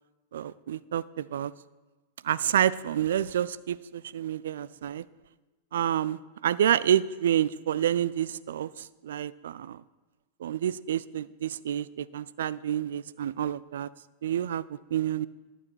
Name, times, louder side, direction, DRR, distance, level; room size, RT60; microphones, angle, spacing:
voice 1, 0.3-1.5 2.2-5.0 5.7-9.8 10.4-13.9 14.2-15.3, right 10 dB, 60° right, 18 dB, 0.3 m, -28 dB
11.5 x 7.1 x 6.3 m, 1.2 s
figure-of-eight pair, 90°, 0 cm